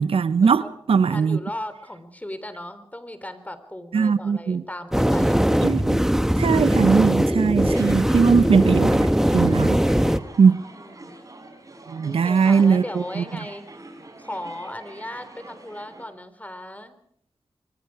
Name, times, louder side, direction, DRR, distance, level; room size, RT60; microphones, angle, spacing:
voice 1, 0.0-1.4 3.9-4.6 5.6-6.0 6.4-9.8 10.4-10.6 11.9-13.2, right 5 dB, 80° right, 0.9 m, -20 dB
voice 2, 1.1-5.5 10.6-11.2 12.0-13.6 14.2-17.0, left 1 dB, 15° left, 3.7 m, -37 dB
sound 1, 4.9-10.2, equal, 5° right, 1.3 m, -20 dB
sound 2, 7.6-16.1, right 2 dB, 35° right, 5.6 m, -45 dB
25.0 x 23.5 x 4.9 m
cardioid pair, 55°, 9 cm